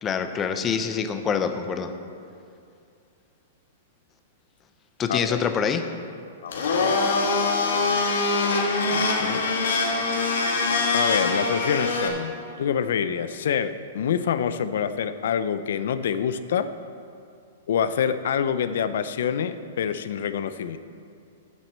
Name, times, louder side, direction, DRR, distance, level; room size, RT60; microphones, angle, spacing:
voice 1, 0.0-1.9 5.0-5.9, left 6 dB, 15° left, 9 dB, 0.5 m, -25 dB
voice 2, 5.1-5.4 6.4-7.0 8.9-9.4 10.9-16.7 17.7-20.8, left 8 dB, 65° left, 12 dB, 0.5 m, -26 dB
Domestic sounds home sounds, 6.5-12.1, left 3 dB, 85° left, 1.7 m, -23 dB
8.4 x 7.5 x 7.3 m, 2.4 s
hypercardioid pair, 165°, 0 cm